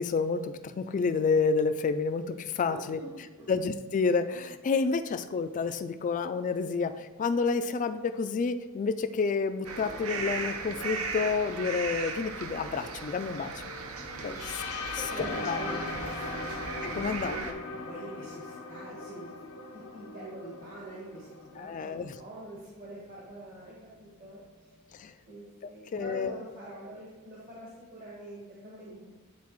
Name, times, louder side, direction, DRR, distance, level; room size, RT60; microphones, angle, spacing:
voice 1, 0.0-3.0 3.5-13.6 14.2-14.6 15.4-15.8 16.9-17.4 21.6-22.1 24.9-25.1 25.9-26.3, left 4 dB, 35° left, 10 dB, 0.3 m, -29 dB
voice 2, 2.7-3.1 3.4-3.5 14.2-14.5 14.8-16.4 16.8-17.4 17.7-19.3 19.7-24.8 25.3-29.1, right 1 dB, 40° right, -6 dB, 1.3 m, -45 dB
sound 1, 9.6-17.5, right 4 dB, 70° right, 0.7 m, -37 dB
sound 2, 14.4-22.2, left 4 dB, 75° left, 0.7 m, -40 dB
Piano, 15.2-23.6 24.0-25.1, left 1 dB, 10° right, 0.7 m, -46 dB
9.4 x 4.0 x 3.0 m, 1.3 s
head